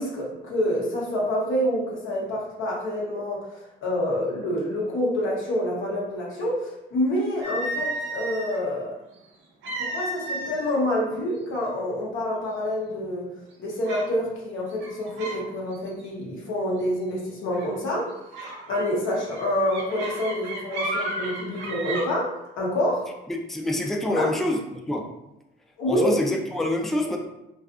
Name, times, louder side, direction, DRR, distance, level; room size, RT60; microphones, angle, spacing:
voice 1, 0.0-3.5 3.8-8.9 9.8-13.3 13.6-18.1 18.7-23.1 24.1-24.3 25.8-26.1, left 1 dB, 85° left, -3 dB, 0.7 m, -27 dB
sound 1, 7.4-8.6 9.6-10.8 11.1-11.4 12.0-12.1 12.6-13.1 13.8-14.1 14.7-15.4 15.7-16.1 17.5-17.8 18.3-22.1, right 1 dB, 85° right, 0.6 m, -33 dB
voice 2, 23.3-24.6 24.9-25.1 25.9-27.2, left 1 dB, ahead, 1 dB, 0.3 m, -26 dB
2.4 x 2.4 x 2.4 m, 0.90 s
cardioid pair, 90°, 20 cm